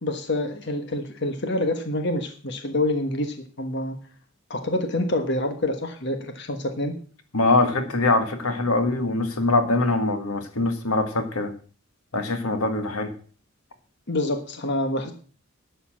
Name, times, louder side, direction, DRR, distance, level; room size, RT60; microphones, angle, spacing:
voice 1, 0.0-4.0 4.5-6.9 14.1-15.1, left 1 dB, 50° left, 6 dB, 1.3 m, -27 dB
voice 2, 7.3-11.5 12.1-13.1, left 2 dB, 90° left, 7 dB, 1.8 m, -23 dB
11.5 x 7.1 x 7.4 m, 0.42 s
head